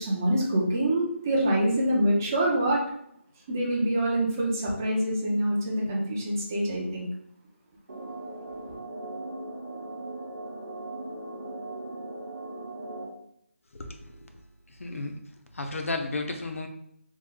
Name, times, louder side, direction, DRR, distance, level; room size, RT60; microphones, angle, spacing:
voice 1, 0.0-2.8 3.5-7.1, right 1 dB, 15° right, -3 dB, 0.3 m, -25 dB
sound 1, 7.9-13.0, right 2 dB, 45° right, 0.7 m, -38 dB
voice 2, 13.7-14.3 14.8-15.1 15.5-16.7, left 3 dB, 75° left, 4 dB, 0.6 m, -33 dB
3.0 x 2.0 x 3.6 m, 0.71 s
figure-of-eight pair, 170°, 7 cm